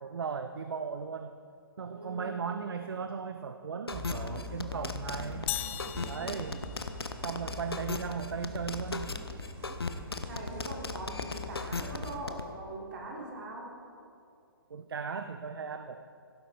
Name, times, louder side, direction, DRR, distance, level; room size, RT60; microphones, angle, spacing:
voice 1, 0.0-1.4 1.8-5.5 6.1-6.7 7.2-9.1 14.7-16.0, right 6 dB, 70° right, 9 dB, 0.5 m, -37 dB
voice 2, 1.9-2.4 5.8-6.5 10.2-13.7, right 1 dB, 55° right, -2 dB, 2.8 m, -42 dB
sound 1, 3.9-12.4, left 4 dB, 85° left, 0.7 m, -36 dB
sound 2, 3.9-12.1, left 3 dB, 20° right, 1.9 m, -43 dB
sound 3, 5.5-7.4, left 13 dB, 30° left, 0.3 m, -39 dB
16.0 x 8.4 x 3.4 m, 2.5 s
figure-of-eight pair, 130°, 13 cm